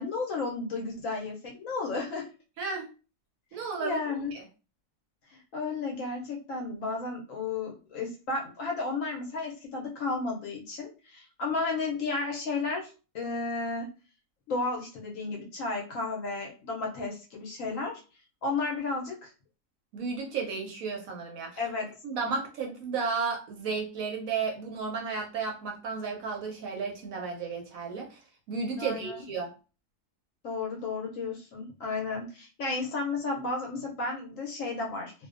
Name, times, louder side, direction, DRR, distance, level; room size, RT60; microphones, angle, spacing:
voice 1, 0.0-2.3 3.8-4.3 5.3-13.9 14.5-18.0 18.4-19.3 21.6-21.9 28.8-29.2 30.4-35.1, left 3 dB, 65° left, -1 dB, 0.9 m, -33 dB
voice 2, 2.6-2.9 3.5-4.0 4.3-4.4 19.9-21.6 22.0-28.2 28.5-29.5, right 5 dB, 70° right, 0 dB, 0.9 m, -33 dB
2.6 x 2.2 x 2.4 m, 0.34 s
omnidirectional pair, 1.7 m